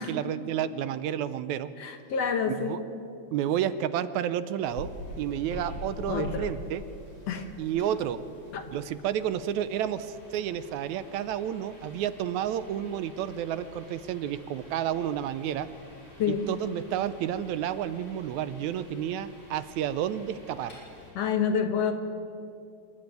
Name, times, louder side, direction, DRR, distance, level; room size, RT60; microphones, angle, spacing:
voice 1, 0.0-1.7 2.6-2.8 3.3-4.9 5.2-6.8 7.6-8.2 8.7-15.7 16.5-20.7, right 10 dB, 80° right, 13 dB, 2.0 m, -30 dB
voice 2, 1.8-2.8 6.1-6.5 7.3-7.5 8.5-8.6 16.2-16.5 21.2-21.9, left 6 dB, 60° left, 6 dB, 2.1 m, -28 dB
sound 1, 4.6-21.1, left 2 dB, 45° left, 7.4 m, -46 dB
26.5 x 11.5 x 9.2 m, 2.6 s
omnidirectional pair, 3.4 m